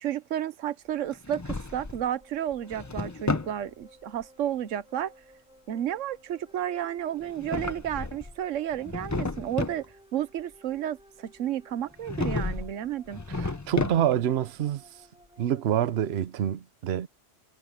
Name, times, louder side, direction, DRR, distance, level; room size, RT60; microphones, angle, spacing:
voice 1, 0.0-5.1 5.7-9.8 10.1-13.2, right 11 dB, 90° right, 1.1 m, -32 dB
Drawer open or close, 1.1-2.1 2.5-3.6 7.2-8.3 8.7-9.8 12.0-12.7 13.1-14.3, left 3 dB, 20° left, 0.6 m, -32 dB
sound 1, 2.2-15.6, equal, 5° right, 4.3 m, -57 dB
voice 2, 13.3-14.8 15.4-17.1, right 10 dB, 60° right, 1.0 m, -27 dB
omnidirectional pair, 1.3 m